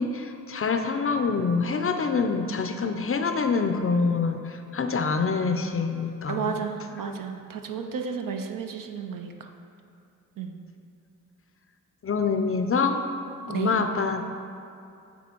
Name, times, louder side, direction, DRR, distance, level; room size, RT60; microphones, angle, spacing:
voice 1, 0.0-6.6 12.0-13.0 13.5-14.2, left 4 dB, 40° left, 6 dB, 0.5 m, -26 dB
voice 2, 6.3-9.5 10.4-10.6 13.5-13.8, right 6 dB, 65° right, 5 dB, 0.6 m, -32 dB
8.1 x 2.7 x 4.4 m, 2.6 s
cardioid pair, 50°, 36 cm